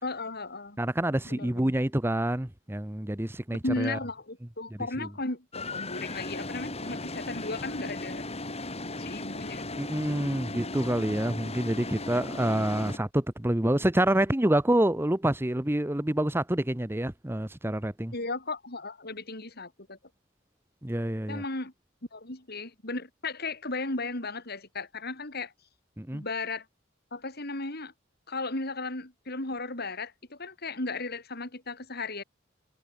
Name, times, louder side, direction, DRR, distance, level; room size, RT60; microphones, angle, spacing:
voice 1, 0.0-0.8 1.3-1.8 3.6-8.3 8.9-9.6 18.1-20.0 21.3-21.7 22.1-25.5 26.1-26.7 27.1-27.9 28.3-32.2, left 2 dB, 55° left, 6.0 m, -35 dB
voice 2, 0.8-4.0 5.0-5.1 9.8-18.1 20.8-21.4 26.0-26.2, right 1 dB, 10° right, 1.0 m, -27 dB
sound 1, 5.5-13.0, left 2 dB, 30° left, 6.4 m, -37 dB
head